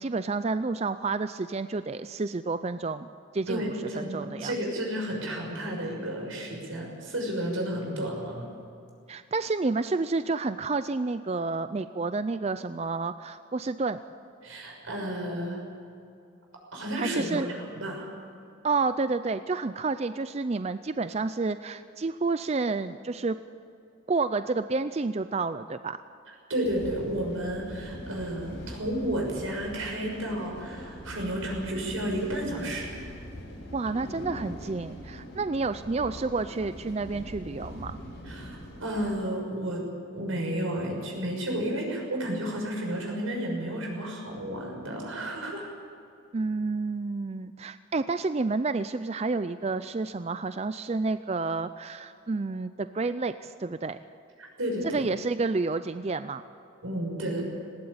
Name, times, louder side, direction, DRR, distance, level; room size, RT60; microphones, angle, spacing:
voice 1, 0.0-3.1 3.3-3.6 4.0-4.5 9.1-14.0 17.0-17.5 18.6-23.4 24.1-26.0 33.7-38.0 46.3-54.0 54.9-56.4, right 3 dB, 30° right, 12 dB, 0.4 m, -30 dB
voice 2, 3.5-8.5 14.4-15.6 16.7-18.1 26.5-33.0 38.2-39.8 40.1-45.7 54.4-55.0 56.8-57.4, right 1 dB, 90° right, 0 dB, 6.5 m, -32 dB
sound 1, 26.6-39.1, equal, 60° left, 4.9 m, -42 dB
19.0 x 18.0 x 8.7 m, 2.5 s
head